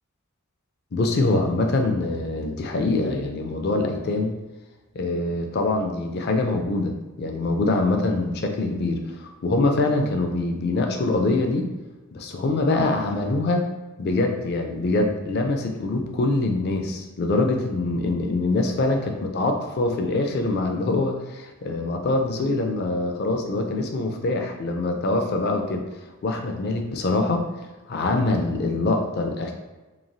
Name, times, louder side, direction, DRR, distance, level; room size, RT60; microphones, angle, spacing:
voice 1, 0.9-4.3 4.9-11.7 12.1-13.7 14.0-25.8 26.2-27.5 27.9-29.5, left 2 dB, 50° left, 3 dB, 0.4 m, -24 dB
3.0 x 2.3 x 2.6 m, 1.2 s
head